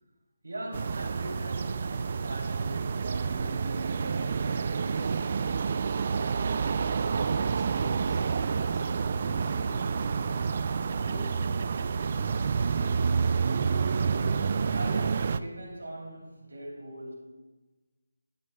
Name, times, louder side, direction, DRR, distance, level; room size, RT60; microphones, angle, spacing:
voice 1, 0.4-5.3 14.7-17.1, right 1 dB, 80° right, 3.2 m, -41 dB
sound 1, 0.7-15.4, right 5 dB, 45° right, 0.3 m, -28 dB
voice 2, 6.6-12.9, right 1 dB, 10° right, 1.0 m, -47 dB
11.5 x 10.5 x 2.3 m
figure-of-eight pair, 160°, 0 cm